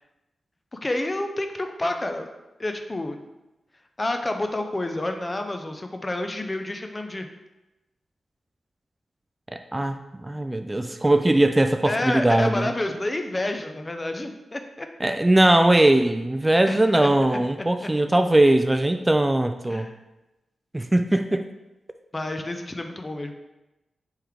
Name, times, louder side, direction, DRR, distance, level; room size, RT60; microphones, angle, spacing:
voice 1, 0.7-2.3 2.6-3.2 4.0-7.3 11.8-14.9 16.7-17.4 17.8-17.9 19.7-19.9 22.1-23.3, left 1 dB, 30° left, 5 dB, 0.6 m, -29 dB
voice 2, 9.5-12.7 15.0-19.9 20.7-21.5, right 1 dB, 20° right, 7 dB, 0.3 m, -20 dB
3.6 x 3.2 x 4.6 m, 0.99 s
supercardioid pair, 45°, 0 cm